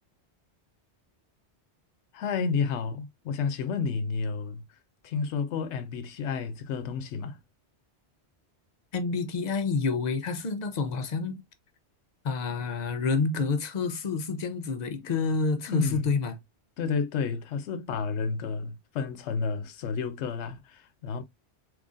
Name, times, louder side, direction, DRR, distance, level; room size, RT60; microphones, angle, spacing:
voice 1, 2.1-4.6 5.0-7.4 15.0-15.1 15.7-16.1 16.8-21.2, left 5 dB, 85° left, 0.9 m, -31 dB
voice 2, 8.9-11.4 12.2-16.4, left 4 dB, 50° left, 0.6 m, -28 dB
3.7 x 3.0 x 2.4 m
omnidirectional pair, 1.1 m